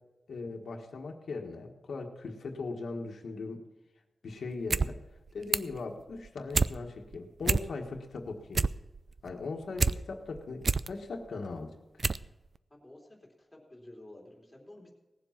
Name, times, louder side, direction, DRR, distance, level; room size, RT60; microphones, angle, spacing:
voice 1, 0.3-3.6 4.2-5.0 5.3-8.6 9.2-11.7, left 3 dB, 85° left, 2 dB, 1.5 m, -39 dB
sound 1, 4.5-4.9 5.2-5.8 6.2-6.7 7.1-7.2 7.4-8.0 8.3-10.0 10.4-10.9 11.4-11.5 12.0-12.3 12.6-12.7, right 4 dB, 40° right, 0.3 m, -28 dB
voice 2, 12.7-14.9, left 1 dB, 5° left, -1 dB, 3.1 m, -52 dB
18.0 x 7.6 x 5.9 m, 1.1 s
wide cardioid pair, 165°, 0 cm